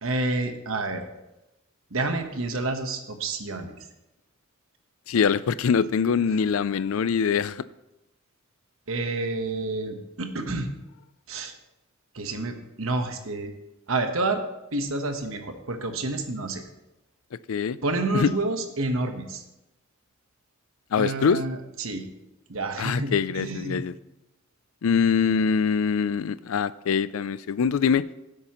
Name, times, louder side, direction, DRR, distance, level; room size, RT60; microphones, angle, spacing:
voice 1, 0.0-1.0 1.9-3.7 8.9-10.7 11.3-11.5 12.1-13.5 13.9-14.4 14.7-16.6 17.8-19.4 21.0-22.1 22.5-23.8, right 2 dB, 70° right, 6 dB, 1.2 m, -29 dB
voice 2, 5.1-7.6 17.5-17.8 18.1-18.3 20.9-21.4 22.8-23.9 24.8-28.0, left 6 dB, 70° left, 17 dB, 0.4 m, -23 dB
16.0 x 8.1 x 3.0 m, 0.96 s
head